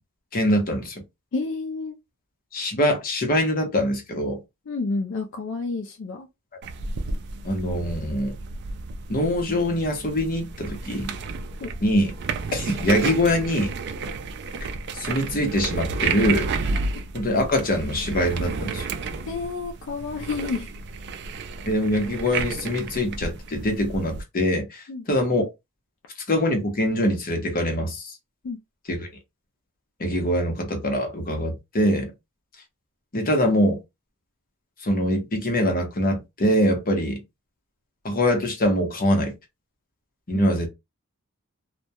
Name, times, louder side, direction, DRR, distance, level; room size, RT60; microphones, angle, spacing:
voice 1, 0.3-1.0 2.5-4.4 7.4-8.4 9.1-11.1 11.8-12.1 12.5-13.7 14.9-16.5 17.1-18.9 21.6-25.5 26.3-28.2 28.9-29.1 30.0-32.1 33.1-33.8 34.8-37.2 38.0-39.3 40.3-40.7, equal, 40° left, 0.7 m, -23 dB
voice 2, 1.3-1.9 4.7-6.3 11.6-11.7 19.3-20.7 24.9-25.0 28.4-28.6 40.3-40.5, left 3 dB, 60° left, 0.4 m, -29 dB
sound 1, 6.6-24.2, right 4 dB, 50° right, 0.3 m, -32 dB
2.2 x 2.1 x 2.7 m
head